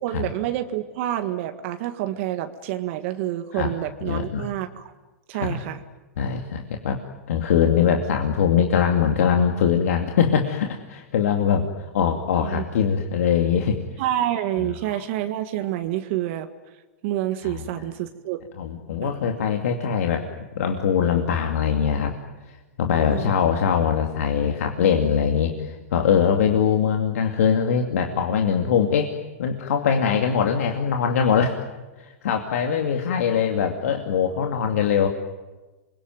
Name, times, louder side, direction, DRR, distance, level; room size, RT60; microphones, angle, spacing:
voice 1, 0.0-4.8 5.3-5.8 12.4-12.6 14.0-16.5 17.0-18.4 19.0-19.2 22.9-23.3, right 12 dB, 55° right, 7 dB, 1.7 m, -28 dB
voice 2, 4.0-4.5 5.3-5.6 6.2-7.0 7.3-13.8 14.6-14.7 17.4-17.7 18.6-20.3 20.6-22.2 22.5-29.1 29.4-31.6 32.0-35.1, left 7 dB, 70° left, 3 dB, 2.6 m, -22 dB
27.0 x 23.0 x 9.5 m, 1.2 s
hypercardioid pair, 125°, 8 cm